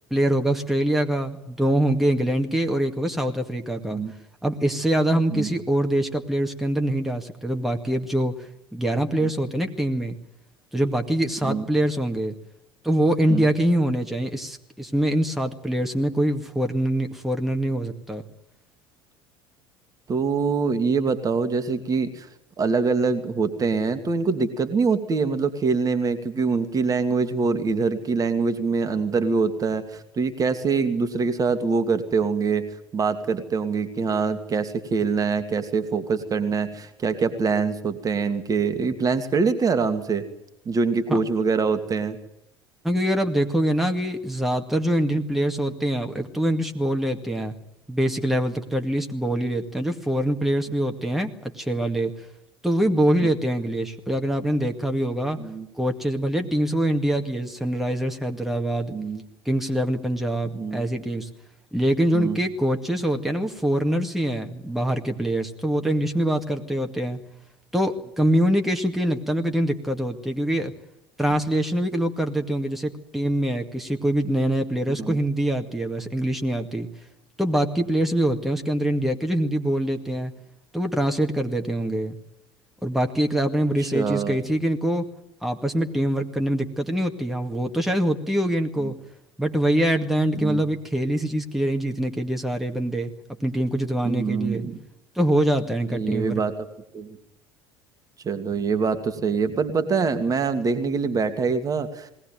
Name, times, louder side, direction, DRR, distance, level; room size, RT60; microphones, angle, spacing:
voice 1, 0.1-4.0 4.4-10.2 10.7-12.4 12.8-18.2 41.1-41.2 42.8-47.6 47.9-52.3 52.6-55.4 55.8-58.9 59.5-61.3 61.7-67.2 67.7-70.7 71.2-76.9 77.4-80.3 80.7-82.2 82.8-85.1 85.4-88.9 89.4-93.1 93.4-94.6 95.2-96.4, right 1 dB, ahead, 3 dB, 2.1 m, -24 dB
voice 2, 20.1-22.3 22.6-32.7 32.9-40.2 40.7-42.2 55.4-55.7 58.9-59.2 60.5-60.8 62.1-62.4 74.9-75.2 83.9-84.4 88.8-88.9 90.3-90.6 94.0-94.8 95.9-96.7 96.9-97.2 98.2-102.1, right 4 dB, 30° right, 9 dB, 2.1 m, -24 dB
20.5 x 18.0 x 9.3 m, 0.81 s
figure-of-eight pair, 65°, 12 cm